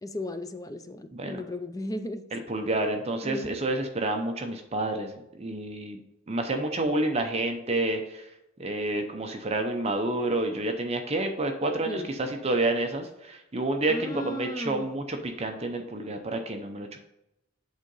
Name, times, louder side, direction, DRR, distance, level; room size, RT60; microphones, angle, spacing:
voice 1, 0.0-2.3 3.2-3.6 11.8-12.1 13.9-14.9, left 1 dB, 15° left, 9 dB, 0.4 m, -35 dB
voice 2, 1.1-1.4 2.3-6.0 6.3-8.3 8.6-17.0, right 2 dB, 30° right, 5 dB, 0.6 m, -29 dB
8.0 x 3.7 x 5.4 m, 0.88 s
head